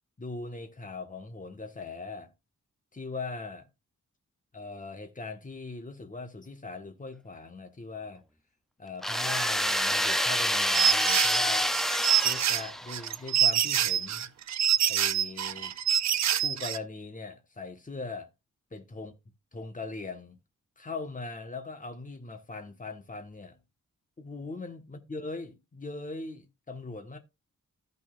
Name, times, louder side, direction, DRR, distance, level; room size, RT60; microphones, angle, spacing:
voice 1, 0.2-2.3 2.9-3.7 4.5-8.2 8.8-11.7 12.2-14.3 14.9-15.7 16.4-18.3 18.7-19.1 19.5-20.4 20.8-23.6 24.2-27.2, left 3 dB, 25° left, 1.5 m, -40 dB
sound 1, 9.0-13.1, equal, ahead, 0.5 m, -27 dB
sound 2, 10.7-16.8, right 10 dB, 60° right, 0.5 m, -26 dB
14.5 x 5.6 x 2.5 m
wide cardioid pair, 120°, 31 cm